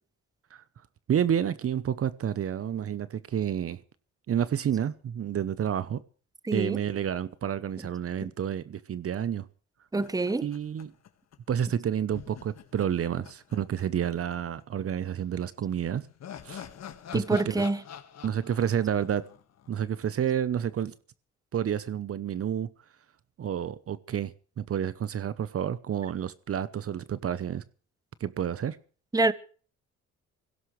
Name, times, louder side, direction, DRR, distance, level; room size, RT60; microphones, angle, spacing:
voice 1, 1.1-3.8 4.3-6.0 6.5-9.5 10.4-10.9 11.5-16.0 16.4-16.7 17.1-17.6 18.2-19.3 19.7-20.9 21.5-22.7 23.4-27.6 28.2-28.8, right 9 dB, 50° right, 0.9 m, -29 dB
voice 2, 6.4-6.8 7.8-7.9 9.9-10.5 11.7-11.8 17.1-17.8 29.1-29.3, right 2 dB, 10° right, 1.1 m, -26 dB
sound 1, 10.0-11.4 11.6-11.7 12.1-14.3 14.6-14.7 15.7-20.0, left 9 dB, 60° left, 1.7 m, -46 dB
24.5 x 16.5 x 3.3 m
cardioid pair, 90°, 30 cm